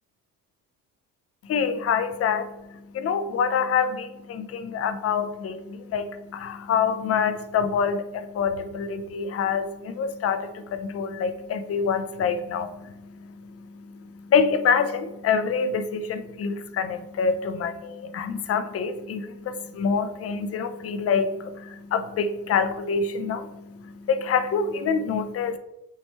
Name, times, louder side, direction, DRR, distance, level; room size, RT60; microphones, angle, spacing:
voice 1, 1.4-2.5 2.9-25.6, left 6 dB, 30° left, 10 dB, 0.7 m, -26 dB
8.1 x 4.1 x 3.3 m, 0.91 s
figure-of-eight pair, 55°, 49 cm